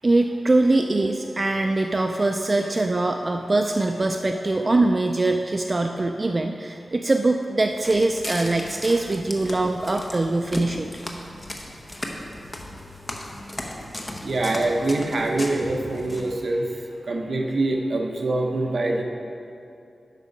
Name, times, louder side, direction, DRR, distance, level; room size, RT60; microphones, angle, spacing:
voice 1, 0.0-10.9, right 2 dB, 30° right, 5 dB, 0.3 m, -22 dB
Walk footsteps, 7.7-16.4, left 1 dB, 20° left, 0.8 m, -36 dB
voice 2, 14.2-19.0, right 2 dB, 60° right, 1 dB, 0.9 m, -25 dB
8.1 x 6.0 x 5.3 m, 2.5 s
wide cardioid pair, 105°, 0 cm